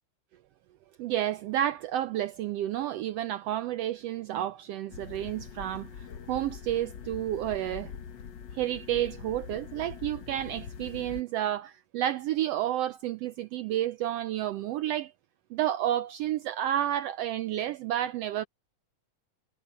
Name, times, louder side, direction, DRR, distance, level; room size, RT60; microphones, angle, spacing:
voice 1, 1.0-7.9 8.5-15.1 15.5-18.4, right 12 dB, 85° right, 1.4 m, -30 dB
sound 1, 4.9-11.2, left 7 dB, 80° left, 1.0 m, -43 dB
omnidirectional pair, 3.5 m